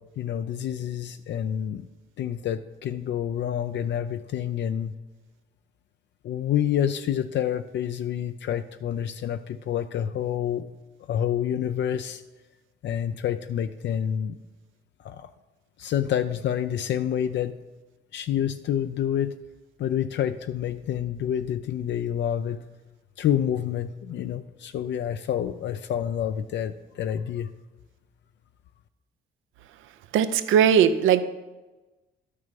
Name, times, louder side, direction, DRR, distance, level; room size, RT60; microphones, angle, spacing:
voice 1, 0.2-1.9 2.2-4.9 6.2-10.7 11.1-12.2 12.8-14.4 15.0-15.3 15.8-17.6 18.1-19.3 19.8-22.6 23.2-27.5, left 10 dB, 65° left, 9 dB, 0.5 m, -28 dB
voice 2, 30.1-31.2, right 8 dB, 85° right, 12 dB, 0.6 m, -19 dB
11.5 x 6.6 x 5.3 m, 1.1 s
cardioid pair, 90°, 20 cm